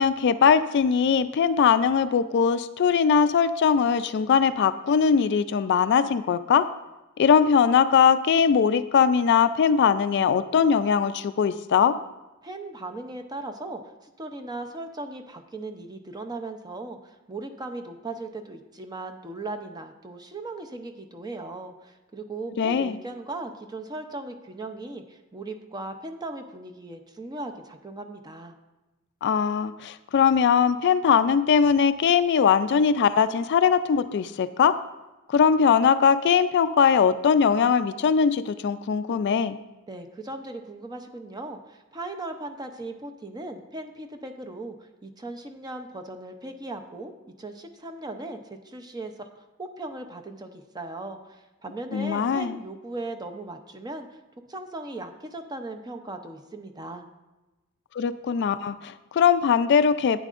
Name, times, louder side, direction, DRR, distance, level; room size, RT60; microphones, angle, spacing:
voice 1, 0.0-6.7 7.2-11.9 22.6-23.0 29.2-34.8 35.3-39.6 51.9-52.6 57.9-60.2, left 6 dB, 55° left, 12 dB, 0.3 m, -21 dB
voice 2, 12.4-28.5 39.9-54.2 54.5-57.0, right 2 dB, 20° right, 6 dB, 0.6 m, -38 dB
11.0 x 9.1 x 2.5 m, 1.1 s
head